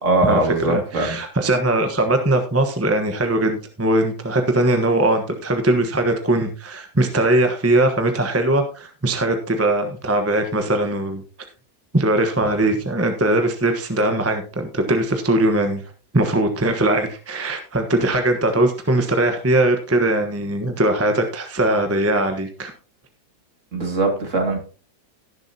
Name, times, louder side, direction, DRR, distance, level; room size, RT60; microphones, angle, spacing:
voice 1, 0.0-1.2 23.7-24.6, right 2 dB, 50° right, 3 dB, 2.5 m, -21 dB
voice 2, 0.7-11.2 11.9-15.8 16.1-22.7, right 1 dB, 10° right, 5 dB, 1.0 m, -20 dB
17.5 x 7.2 x 2.8 m, 0.36 s
omnidirectional pair, 1.7 m